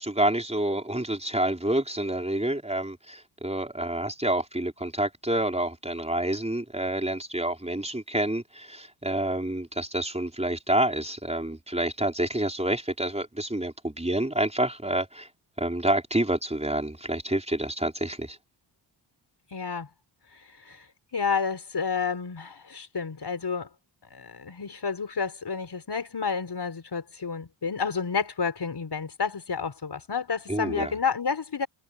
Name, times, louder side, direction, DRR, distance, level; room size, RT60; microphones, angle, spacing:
voice 1, 0.0-15.3 15.6-18.4 30.5-30.9, right 1 dB, 15° right, 5.0 m, -28 dB
voice 2, 19.5-19.9 20.3-20.9 21.1-23.7 24.1-31.7, left 5 dB, 50° left, 4.9 m, -30 dB
cardioid pair, 55°, 50 cm